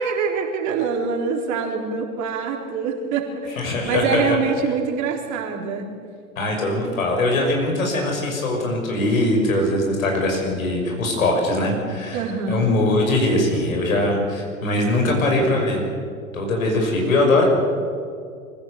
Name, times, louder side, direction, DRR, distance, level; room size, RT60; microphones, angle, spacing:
voice 1, 0.0-5.9 12.1-12.7, right 5 dB, 45° right, 1 dB, 3.8 m, -25 dB
voice 2, 3.6-4.4 6.4-15.8 16.3-17.4, left 2 dB, 70° left, 1 dB, 6.0 m, -21 dB
24.0 x 15.5 x 8.2 m, 2.2 s
figure-of-eight pair, 85°, 41 cm